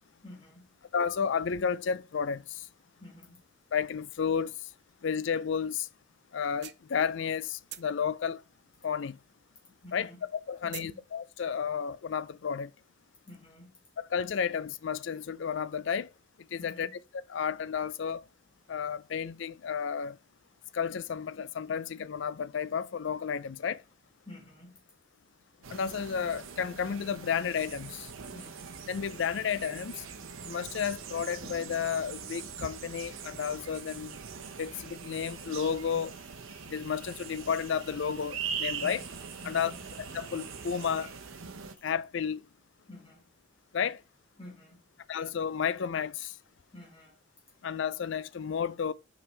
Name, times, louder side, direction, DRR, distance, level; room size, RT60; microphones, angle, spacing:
voice 1, 0.2-0.8 3.0-3.4 9.8-11.0 13.3-13.8 16.6-17.0 24.2-24.9 28.3-28.6 38.8-39.0 39.4-39.9 42.9-43.3 44.4-44.9 46.7-47.2, left 1 dB, 25° left, 3.1 m, -50 dB
voice 2, 0.9-2.7 3.7-4.7 5.0-5.9 6.3-8.4 8.8-9.2 9.9-10.1 10.5-12.7 14.1-16.1 16.5-16.9 17.3-18.2 18.7-20.2 20.7-23.8 25.7-28.1 28.9-30.1 30.4-34.2 34.6-36.1 36.7-39.0 39.5-39.7 40.1-41.1 41.8-42.4 43.7-44.0 45.1-46.4 47.6-48.9, left 7 dB, 65° left, 0.4 m, -32 dB
sound 1, 6.6-7.4 7.7-9.5 9.8-11.0, right 14 dB, 55° right, 0.4 m, -45 dB
sound 2, 25.6-41.7, right 6 dB, 85° right, 0.9 m, -42 dB
sound 3, 33.4-41.9, right 4 dB, 25° right, 2.2 m, -55 dB
8.5 x 5.1 x 3.2 m
head